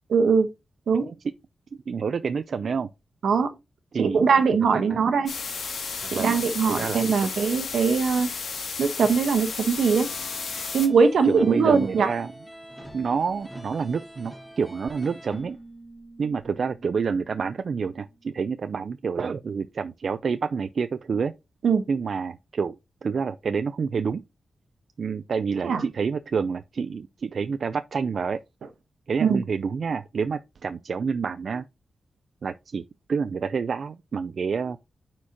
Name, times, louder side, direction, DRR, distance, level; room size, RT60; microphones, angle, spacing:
voice 1, 0.1-0.5 0.9-1.1 3.2-3.5 4.0-5.3 6.1-8.3 8.8-10.1 10.7-12.1 21.6-21.8 25.6-25.8 29.2-29.4, right 5 dB, 80° right, 1.1 m, -21 dB
voice 2, 1.9-2.9 3.9-4.2 4.9-5.0 6.0-6.4 6.7-7.3 11.2-12.3 12.9-15.6 16.2-21.3 21.9-22.8 23.0-24.2 25.0-28.4 29.1-31.7 32.4-32.8 33.1-34.8, right 5 dB, 60° right, 0.4 m, -28 dB
sound 1, 5.3-10.9, left 5 dB, 70° left, 1.9 m, -33 dB
sound 2, 10.1-15.3, equal, ahead, 2.7 m, -45 dB
Keyboard (musical), 15.3-18.9, right 1 dB, 20° left, 2.8 m, -49 dB
9.5 x 4.4 x 2.8 m
wide cardioid pair, 100°, 0 cm